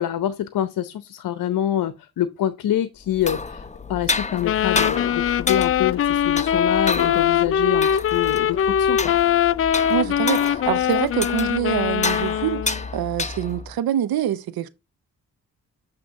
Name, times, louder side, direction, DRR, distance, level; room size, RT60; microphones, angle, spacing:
voice 1, 0.0-9.1, left 11 dB, 60° left, 0.8 m, -26 dB
sound 1, 3.0-13.7, left 4 dB, 20° left, 0.8 m, -30 dB
sound 2, 4.4-12.8, left 9 dB, 35° left, 0.4 m, -21 dB
voice 2, 9.9-14.7, right 11 dB, 65° right, 0.8 m, -25 dB
8.5 x 3.1 x 5.1 m
hypercardioid pair, 45°, 39 cm